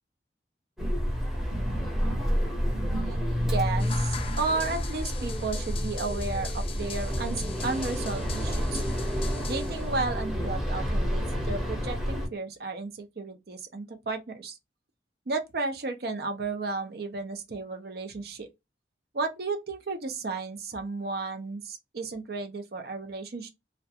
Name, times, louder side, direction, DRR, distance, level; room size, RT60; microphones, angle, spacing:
sound 1, 0.8-12.3, equal, ahead, 0.8 m, -29 dB
voice 1, 2.8-8.8 9.5-14.6 15.3-18.5 19.1-23.5, right 3 dB, 60° right, 0.6 m, -33 dB
sound 2, 3.8-10.2, left 6 dB, 30° left, 0.3 m, -42 dB
2.3 x 2.1 x 2.7 m
head